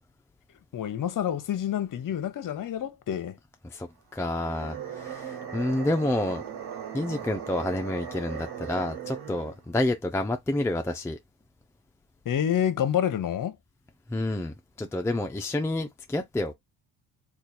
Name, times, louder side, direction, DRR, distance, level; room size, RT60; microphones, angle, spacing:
voice 1, 0.7-3.4 12.2-13.5, left 10 dB, 50° left, 0.9 m, -28 dB
voice 2, 3.7-6.4 6.9-11.2 14.1-16.5, left 1 dB, 5° left, 0.4 m, -29 dB
sound 1, 4.3-9.6, right 8 dB, 70° right, 1.3 m, -38 dB
3.2 x 2.4 x 4.1 m
cardioid pair, 85°, 40 cm